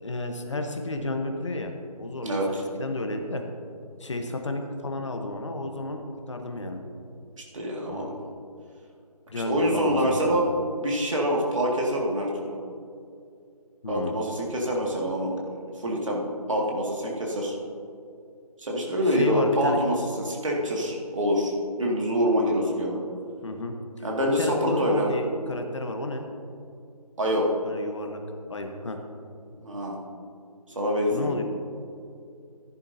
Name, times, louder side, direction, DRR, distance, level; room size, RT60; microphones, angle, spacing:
voice 1, 0.0-1.7 2.0-3.4 4.0-6.0 6.3-6.8 7.9-8.1 9.3-10.4 13.8-14.2 19.0-19.8 23.4-23.8 24.4-26.3 27.6-28.2 28.5-29.0 31.1-31.4, left 2 dB, 50° left, 4 dB, 1.1 m, -31 dB
voice 2, 2.2-2.6 7.5-8.2 9.3-12.6 13.9-15.4 15.8-16.2 16.5-17.5 18.6-23.0 24.0-25.1 27.2-27.5 29.6-30.0 30.8-31.3, equal, 50° right, -2 dB, 2.1 m, -26 dB
15.5 x 10.5 x 2.8 m, 2.4 s
figure-of-eight pair, 165°, 20 cm